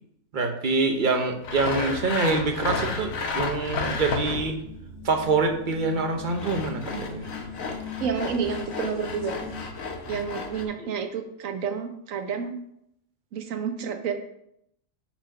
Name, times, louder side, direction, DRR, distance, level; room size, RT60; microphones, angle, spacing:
voice 1, 0.3-4.6 5.0-7.3, right 3 dB, 45° right, 5 dB, 0.8 m, -25 dB
Sawing, 1.4-4.6 6.1-10.6, left 3 dB, 85° left, 1.3 m, -32 dB
sound 1, 2.1-9.6, left 4 dB, 60° left, 2.5 m, -41 dB
voice 2, 8.0-9.4 10.1-12.6 13.3-14.1, right 6 dB, 75° right, 6 dB, 1.2 m, -30 dB
5.3 x 4.9 x 5.7 m, 0.76 s
omnidirectional pair, 1.4 m